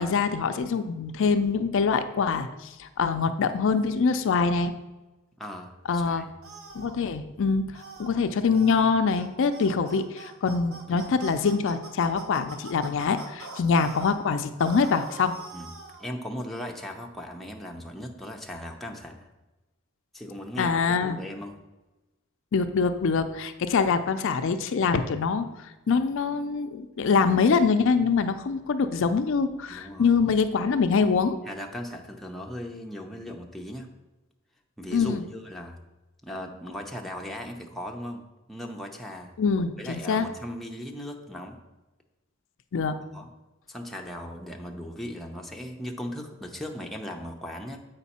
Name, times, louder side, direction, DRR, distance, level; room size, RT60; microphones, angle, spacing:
voice 1, 0.0-4.7 5.9-6.2 6.7-15.3 20.6-21.2 22.5-25.5 25.9-31.4 34.9-35.2 39.4-40.3 42.7-43.0, left 5 dB, 65° left, 9 dB, 0.4 m, -24 dB
voice 2, 5.4-6.3 10.9-11.1 15.5-15.7 16.0-19.3 20.1-21.6 29.7-30.1 31.5-33.9 34.8-35.8 36.2-38.2 38.5-39.4 39.8-41.6 43.1-43.3 43.7-47.8, equal, ahead, 1 dB, 0.7 m, -38 dB
sound 1, 6.4-7.0 7.7-8.1 8.5-8.8 9.1-9.3 9.5-14.1 14.6-16.1, right 3 dB, 85° right, 1.2 m, -43 dB
8.1 x 5.1 x 4.2 m, 1.1 s
head